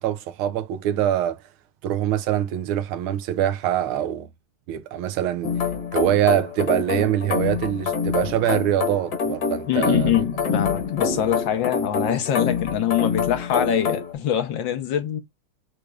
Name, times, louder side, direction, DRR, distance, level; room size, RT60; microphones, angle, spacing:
voice 1, 0.0-1.4 1.8-4.3 4.7-5.5 5.9-10.1, right 11 dB, 90° right, 1.6 m, -24 dB
sound 1, 5.4-14.1, left 5 dB, 55° left, 1.8 m, -26 dB
voice 2, 9.7-15.2, left 10 dB, 70° left, 1.5 m, -24 dB
6.3 x 3.3 x 2.3 m
omnidirectional pair, 2.3 m